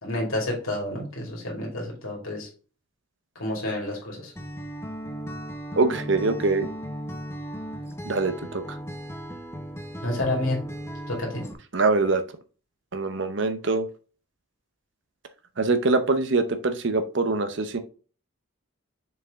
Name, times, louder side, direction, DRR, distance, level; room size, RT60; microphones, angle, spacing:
voice 1, 0.0-2.5 3.3-4.3 10.0-10.6 11.1-11.4, left 1 dB, 75° left, -1 dB, 2.7 m, -29 dB
Acoustic guitar, 4.4-11.5, equal, 10° left, 0.9 m, -36 dB
voice 2, 5.8-6.7 8.0-8.8 11.7-12.2 12.9-13.9 15.6-17.8, right 3 dB, 55° right, 9 dB, 0.7 m, -24 dB
6.7 x 4.7 x 3.6 m, 0.38 s
head